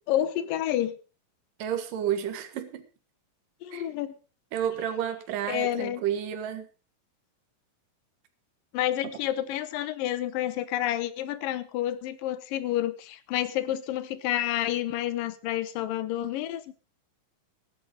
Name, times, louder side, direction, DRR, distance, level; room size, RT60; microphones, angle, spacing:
voice 1, 0.1-1.0 3.6-4.1 5.5-6.0 8.7-16.6, left 12 dB, 80° left, 2.7 m, -29 dB
voice 2, 1.6-2.8 3.7-3.9 4.5-6.7, right 9 dB, 70° right, 3.2 m, -31 dB
15.5 x 11.5 x 5.1 m
omnidirectional pair, 4.0 m